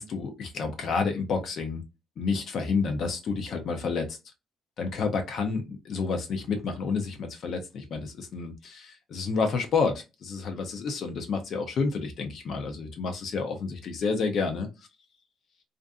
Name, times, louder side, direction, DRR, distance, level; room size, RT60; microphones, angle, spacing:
voice 1, 0.0-1.8 2.2-4.2 4.8-14.7, left 4 dB, 50° left, 5 dB, 0.6 m, -29 dB
2.5 x 2.5 x 2.3 m, 0.25 s
cardioid pair, 140°, 0 cm